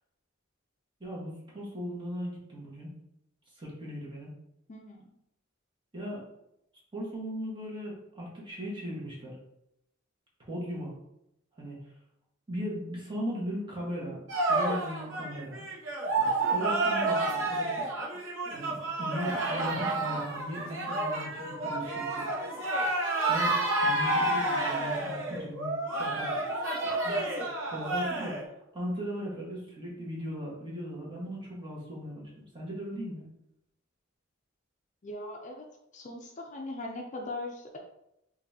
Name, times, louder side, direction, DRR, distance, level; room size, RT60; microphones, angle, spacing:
voice 1, 1.0-2.9 3.5-4.3 5.9-6.3 6.9-9.3 10.5-10.9 11.6-11.8 12.5-15.6 16.2-17.8 18.5-22.3 23.3-26.4 27.0-27.2 27.7-33.3, equal, 25° right, -5 dB, 1.3 m, -38 dB
voice 2, 4.7-5.0 24.2-24.3 35.0-35.6 35.9-37.8, left 2 dB, 40° left, 1 dB, 0.5 m, -40 dB
sound 1, 14.3-28.4, right 2 dB, 75° right, 1.0 m, -30 dB
5.3 x 2.6 x 2.7 m, 0.81 s
head